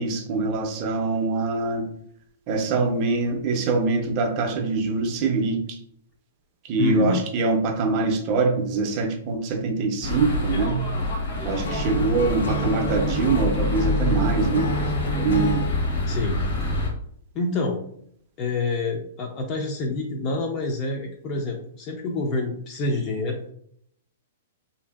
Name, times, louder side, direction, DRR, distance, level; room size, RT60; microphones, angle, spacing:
voice 1, 0.0-1.9 2.5-5.6 6.7-10.8 11.4-14.7 15.2-15.7, right 3 dB, 30° right, 4 dB, 0.4 m, -24 dB
voice 2, 6.8-7.2 16.1-16.4 17.3-17.8 18.4-23.5, left 3 dB, 30° left, 1 dB, 0.4 m, -27 dB
sound 1, 10.0-16.9, left 2 dB, 70° left, 1.0 m, -26 dB
Acoustic guitar / Strum, 11.6-15.7, right 1 dB, 90° left, 0.5 m, -30 dB
2.8 x 2.5 x 2.2 m, 0.67 s
hypercardioid pair, 160°, 0 cm